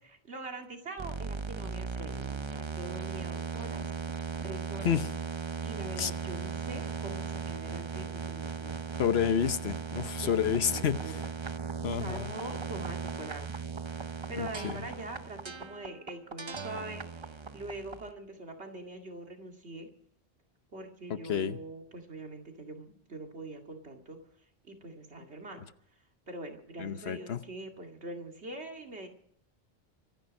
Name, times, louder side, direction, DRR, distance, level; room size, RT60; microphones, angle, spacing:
voice 1, 0.2-3.9 4.4-5.0 5.6-9.0 10.2-11.1 11.9-14.0 14.3-19.9 20.7-24.2 24.6-25.6 26.3-29.1, right 2 dB, 80° right, 2.5 m, -43 dB
sound 1, 1.0-18.1, right 5 dB, 30° right, 0.7 m, -37 dB
voice 2, 9.0-11.1 11.8-12.3 14.4-14.8 21.3-21.6 26.8-27.4, left 8 dB, 70° left, 1.1 m, -29 dB
25.0 x 10.5 x 5.3 m
omnidirectional pair, 1.1 m